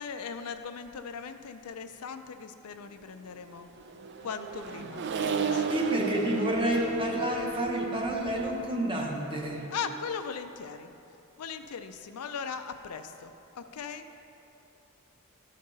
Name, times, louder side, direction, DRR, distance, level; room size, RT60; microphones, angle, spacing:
voice 1, 0.0-3.7 4.2-5.8 9.7-10.9 11.4-14.1, left 6 dB, 90° left, 8 dB, 0.5 m, -39 dB
Accelerating revving vroom, 3.6-10.2, right 6 dB, 55° right, 0.4 m, -34 dB
voice 2, 5.7-9.6, equal, 25° right, -1 dB, 1.0 m, -29 dB
13.0 x 5.3 x 4.0 m, 2.9 s
head